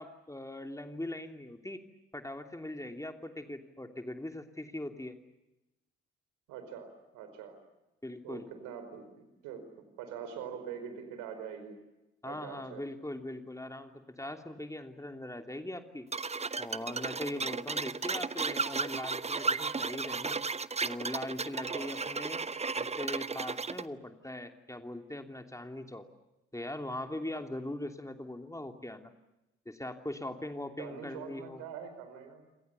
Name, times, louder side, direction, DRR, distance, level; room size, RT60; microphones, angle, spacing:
voice 1, 0.0-1.8 2.1-5.2 8.0-8.5 12.2-16.1 16.6-20.4 20.8-22.4 22.7-26.1 26.5-29.1 29.6-31.6, left 1 dB, 10° left, 5 dB, 3.0 m, -41 dB
voice 2, 6.5-7.6 8.2-9.0 9.4-11.8 12.2-12.8 17.3-17.6 21.7-22.0 30.8-32.4, right 7 dB, 70° right, 9 dB, 4.9 m, -44 dB
sound 1, 16.1-23.9, right 4 dB, 20° right, 0.9 m, -34 dB
28.0 x 27.0 x 7.0 m, 0.97 s
figure-of-eight pair, 40°, 32 cm